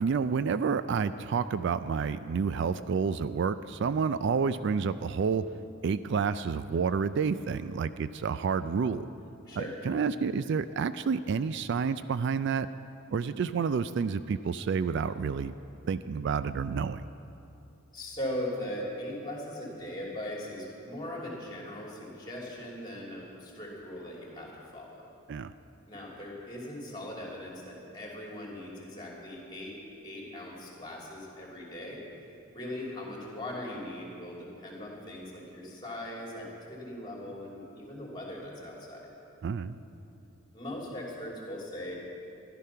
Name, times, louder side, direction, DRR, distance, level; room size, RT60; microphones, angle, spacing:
voice 1, 0.0-5.5 5.8-9.1 9.6-12.7 13.1-15.5 15.9-17.1 25.3-25.5 39.4-39.8, right 5 dB, 60° right, 14 dB, 0.3 m, -29 dB
voice 2, 9.5-9.8 17.9-25.1 25.9-29.8 30.0-32.0 32.5-39.1 40.5-41.9, left 1 dB, 20° left, -3 dB, 2.9 m, -39 dB
14.5 x 11.5 x 5.7 m, 2.7 s
head